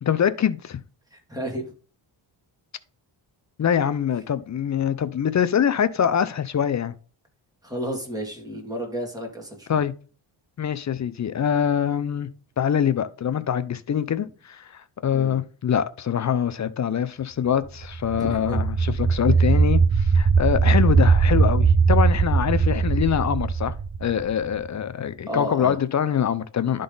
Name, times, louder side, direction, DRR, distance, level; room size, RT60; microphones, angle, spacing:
voice 1, 0.0-0.8 3.6-6.9 9.7-9.9 10.6-12.3 12.6-23.7 24.0-26.8, left 8 dB, 35° left, 0.6 m, -24 dB
voice 2, 1.1-1.7 7.6-9.8 15.1-15.4 18.2-18.6 25.3-25.8, equal, 10° right, 2.5 m, -32 dB
sound 1, 17.8-24.7, right 5 dB, 25° right, 0.5 m, -20 dB
11.0 x 3.8 x 3.9 m
cardioid pair, 95°, 47 cm